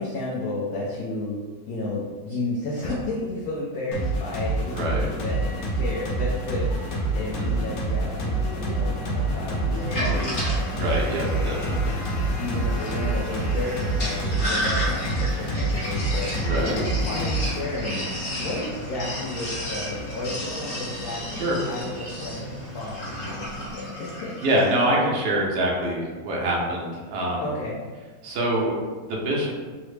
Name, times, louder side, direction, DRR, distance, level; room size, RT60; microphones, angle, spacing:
voice 1, 0.0-1.4 1.7-11.4 12.4-18.0 18.4-24.4 27.4-27.8, left 2 dB, 85° left, -5 dB, 0.8 m, -33 dB
sound 1, 3.9-17.6, right 2 dB, 70° left, 1.3 m, -27 dB
voice 2, 4.7-5.1 7.4-7.7 10.7-12.0 16.4-16.8 21.3-21.6 24.4-27.4 28.2-28.7 29.0-29.5, right 1 dB, 70° right, -2 dB, 1.2 m, -25 dB
Motor vehicle (road), 5.2-23.7, equal, 45° right, 1.5 m, -38 dB
Sink (filling or washing), 9.7-24.8, equal, 40° left, 1.1 m, -33 dB
3.8 x 2.0 x 3.1 m, 1.4 s
omnidirectional pair, 2.1 m